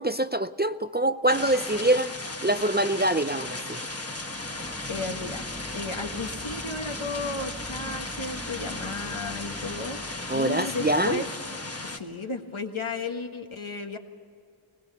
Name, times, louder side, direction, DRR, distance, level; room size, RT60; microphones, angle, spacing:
voice 1, 0.0-2.1 2.4-3.8 10.3-11.2, right 1 dB, 20° right, 0.4 m, -25 dB
sound 1, 1.3-12.0, left 2 dB, 30° left, 1.3 m, -36 dB
sound 2, 4.0-10.6, equal, ahead, 1.4 m, -42 dB
voice 2, 4.9-5.5 5.7-10.0 10.3-11.3 11.9-14.0, left 3 dB, 75° left, 1.6 m, -34 dB
20.5 x 18.5 x 6.9 m
wide cardioid pair, 40°, 49 cm